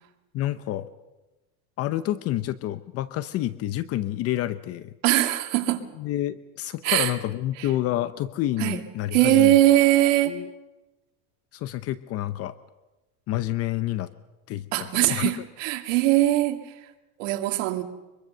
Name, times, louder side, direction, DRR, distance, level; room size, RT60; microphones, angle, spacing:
voice 1, 0.3-0.9 1.8-4.9 6.0-9.6 10.3-10.5 11.5-12.6 13.3-14.1 14.5-15.4, left 14 dB, 40° left, 14 dB, 0.7 m, -29 dB
voice 2, 5.0-5.8 6.8-7.1 7.6-7.7 8.6-8.8 9.1-10.4 14.7-16.6 17.2-17.8, right 15 dB, 75° right, 6 dB, 2.3 m, -21 dB
23.5 x 23.0 x 6.7 m, 1.1 s
cardioid pair, 155°, 38 cm